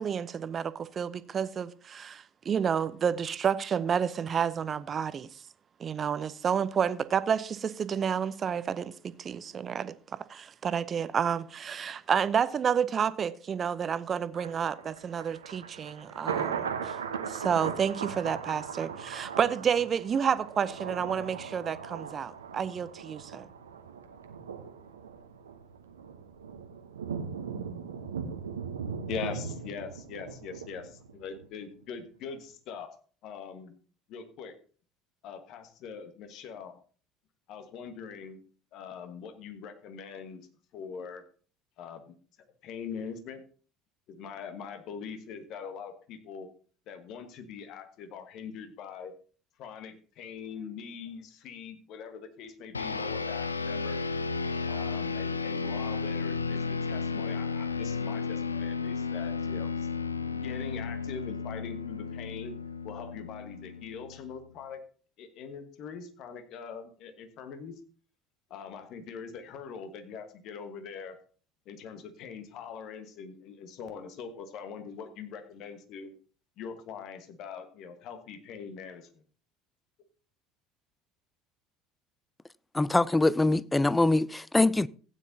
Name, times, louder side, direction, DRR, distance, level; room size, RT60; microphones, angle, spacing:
voice 1, 0.0-5.3 5.8-9.9 10.3-17.0 17.3-23.5, right 7 dB, 35° right, 0.6 m, -30 dB
Thunder, 14.3-31.5 31.8-31.9, right 6 dB, 80° right, 0.9 m, -39 dB
voice 2, 29.1-32.9 33.2-33.7 34.1-34.5 35.2-36.8 37.5-38.4 38.7-40.5 40.7-41.2 41.8-42.1 42.6-43.4 44.1-46.5 46.9-49.1 49.6-54.0 54.7-59.9 60.3-62.5 62.8-64.8 65.2-67.8 68.5-71.2 71.7-76.1 76.6-79.2, left 6 dB, 55° left, 1.4 m, -42 dB
sound 1, 52.7-64.4, left 4 dB, 85° left, 0.4 m, -33 dB
voice 3, 82.7-84.9, left 2 dB, 10° left, 0.4 m, -23 dB
15.5 x 9.3 x 2.7 m
figure-of-eight pair, 65°, 0 cm